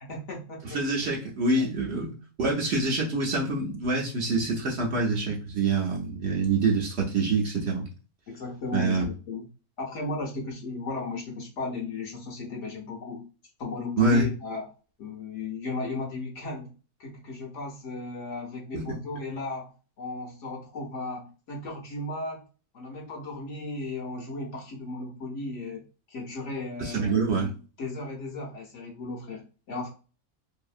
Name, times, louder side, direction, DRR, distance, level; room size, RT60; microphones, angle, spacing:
voice 1, 0.1-0.8 1.5-1.6 8.3-9.5 9.8-13.3 13.6-14.7 15.0-16.7 17.0-22.4 22.7-27.2 27.8-29.9, left 2 dB, 65° left, 0 dB, 0.9 m, -35 dB
voice 2, 0.6-7.9 8.7-9.0 14.0-14.3 18.7-18.8 26.8-27.5, right 3 dB, 55° right, -2 dB, 0.8 m, -26 dB
2.7 x 2.6 x 2.4 m, 0.36 s
omnidirectional pair, 1.5 m